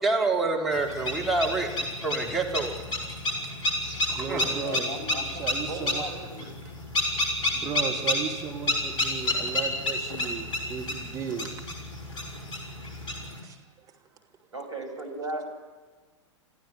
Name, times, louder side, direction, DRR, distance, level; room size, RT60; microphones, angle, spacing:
voice 1, 0.0-1.7 2.0-2.7 4.1-4.4, right 3 dB, ahead, -3 dB, 4.0 m, -27 dB
sound 1, 0.7-13.4, left 1 dB, 30° left, 5.4 m, -30 dB
voice 2, 3.8-4.9 5.3-6.1 7.5-11.5 13.4-13.9, right 6 dB, 20° right, 2 dB, 2.5 m, -35 dB
voice 3, 4.4-6.6 14.5-15.4, right 1 dB, 70° right, 4 dB, 6.4 m, -37 dB
28.0 x 15.0 x 9.3 m, 1.4 s
figure-of-eight pair, 100°, 16 cm